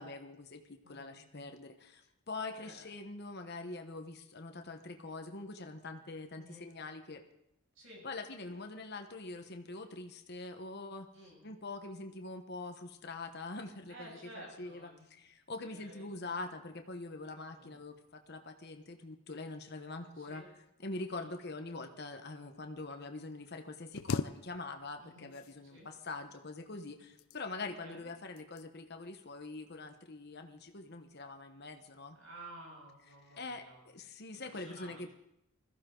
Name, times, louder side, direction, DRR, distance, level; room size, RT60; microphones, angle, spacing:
voice 1, 0.0-7.2 8.0-11.1 11.4-14.2 14.6-20.4 20.8-32.2 33.3-35.1, left 3 dB, 50° left, 6 dB, 1.1 m, -44 dB
voice 2, 0.8-1.1 2.5-2.9 6.3-6.6 7.8-8.1 11.1-11.4 13.9-15.2 15.6-16.2 17.5-17.8 20.1-20.5 21.1-21.3 25.0-25.9 27.6-28.1 32.1-33.8 34.5-35.1, right 1 dB, 65° right, -1 dB, 6.8 m, -53 dB
sound 1, 23.9-25.0 25.3-26.0 26.9-27.7 28.4-28.7 29.1-29.4, left 5 dB, 75° left, 0.5 m, -39 dB
20.5 x 14.5 x 3.8 m, 0.81 s
head